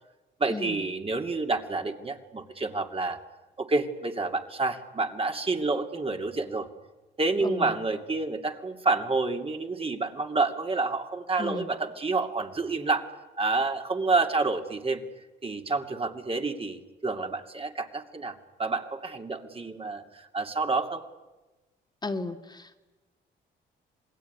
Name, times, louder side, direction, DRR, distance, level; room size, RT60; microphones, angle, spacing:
voice 1, 0.4-3.2 3.6-6.7 7.2-13.1 13.4-15.0 15.4-21.0, right 3 dB, 30° right, 4 dB, 2.7 m, -29 dB
voice 2, 7.4-7.7 11.4-11.7 22.0-22.8, left 3 dB, 20° left, 5 dB, 2.0 m, -34 dB
27.5 x 20.0 x 9.6 m, 1.1 s
cardioid pair, 90°, 20 cm